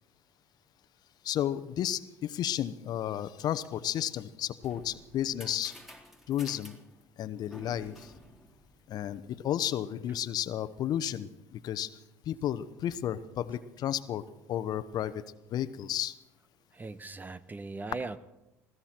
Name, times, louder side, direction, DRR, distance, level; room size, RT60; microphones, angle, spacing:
voice 1, 1.2-5.7 6.3-6.7 7.2-8.1 8.9-11.9 12.3-14.2 14.5-15.2 15.5-16.1, left 11 dB, 55° left, 14 dB, 0.9 m, -32 dB
sound 1, 4.4-9.3, left 1 dB, ahead, 3.7 m, -52 dB
voice 2, 16.7-18.2, right 3 dB, 20° right, 16 dB, 0.9 m, -39 dB
20.5 x 15.5 x 4.4 m, 0.92 s
hypercardioid pair, 75°, 8 cm